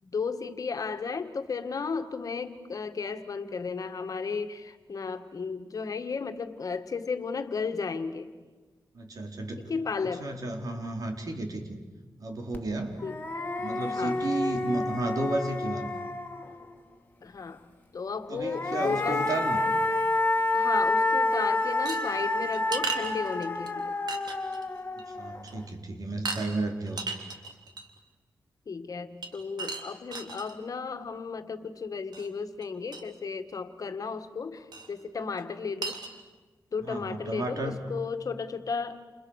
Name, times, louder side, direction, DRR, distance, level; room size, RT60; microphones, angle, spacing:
voice 1, 0.0-8.3 9.6-10.3 13.0-13.2 13.9-14.3 17.2-17.7 17.9-19.3 20.5-23.9 28.7-36.0 36.7-39.0, left 5 dB, 55° left, 8 dB, 1.9 m, -34 dB
voice 2, 8.9-9.7 10.0-11.8 12.2-13.0 13.6-15.9 18.3-19.6 25.1-27.2 36.8-37.8, right 2 dB, 55° right, 4 dB, 4.2 m, -33 dB
sound 1, 12.5-12.6 13.0-16.7 18.3-25.6, left 2 dB, 25° left, 2.7 m, -29 dB
sound 2, 21.9-23.7 24.1-24.6 25.0-25.1 25.5-25.7 26.2-26.5 26.9-28.0 29.2-30.5 32.1-32.3 32.6-32.7 32.9-33.0 34.7-34.9 35.4-35.5 35.8-36.1, right 4 dB, 75° right, 3.3 m, -36 dB
29.5 x 29.5 x 6.6 m, 1.3 s
wide cardioid pair, 105°, 7 cm